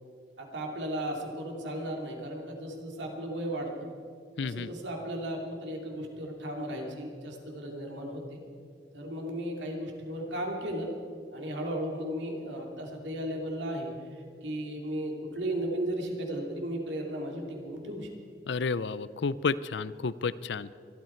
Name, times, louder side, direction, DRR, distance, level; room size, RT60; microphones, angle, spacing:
voice 1, 0.4-3.9 4.4-8.4 8.9-10.9 11.3-13.9 14.4-18.1, right 1 dB, 85° right, 1 dB, 2.8 m, -35 dB
voice 2, 4.4-4.7 18.5-20.7, left 4 dB, 75° left, 17 dB, 0.5 m, -31 dB
23.0 x 12.5 x 4.5 m, 2.4 s
head